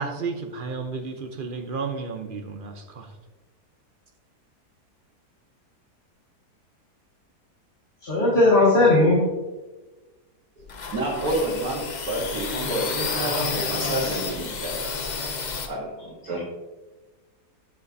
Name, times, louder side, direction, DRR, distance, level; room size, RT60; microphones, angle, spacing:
voice 1, 0.0-3.1, right 4 dB, 55° right, 5 dB, 0.6 m, -32 dB
voice 2, 8.0-9.2, left 2 dB, 30° left, -7 dB, 1.9 m, -17 dB
sound 1, 10.6-15.7, left 4 dB, 70° left, 0.4 m, -30 dB
voice 3, 10.9-14.8 15.7-16.4, right 1 dB, 70° right, -6 dB, 2.1 m, -29 dB
9.4 x 7.5 x 2.7 m, 1.2 s
omnidirectional pair, 1.7 m